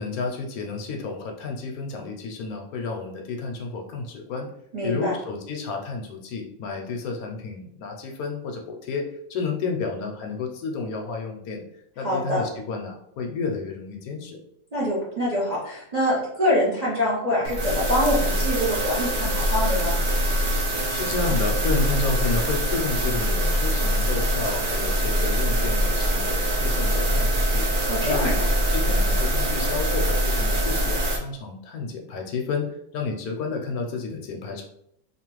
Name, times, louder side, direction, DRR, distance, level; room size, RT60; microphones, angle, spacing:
voice 1, 0.0-4.5 4.8-9.0 9.3-11.6 12.0-14.4 20.9-27.7 28.0-28.3 28.7-32.7 32.9-34.6, left 4 dB, 75° left, 2 dB, 1.0 m, -31 dB
voice 2, 4.7-5.1 12.0-12.4 14.7-20.0 27.9-28.5, left 1 dB, 40° right, -7 dB, 0.6 m, -25 dB
sound 1, 17.4-31.2, equal, 85° right, 0.4 m, -23 dB
2.9 x 2.2 x 3.0 m, 0.72 s
omnidirectional pair, 1.6 m